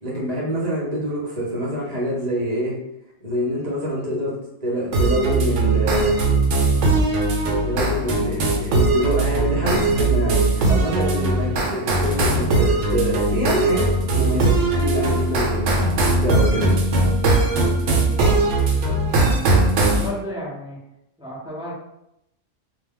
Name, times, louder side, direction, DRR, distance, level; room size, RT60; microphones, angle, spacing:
voice 1, 0.0-2.8 3.2-6.2 7.5-16.8, equal, 40° right, -5 dB, 0.7 m, -26 dB
sound 1, 4.9-20.1, right 2 dB, 75° right, 0.9 m, -20 dB
voice 2, 18.2-18.5 19.8-20.8 21.2-21.7, equal, 5° right, -7 dB, 0.5 m, -33 dB
2.3 x 2.2 x 3.5 m, 0.83 s
omnidirectional pair, 1.3 m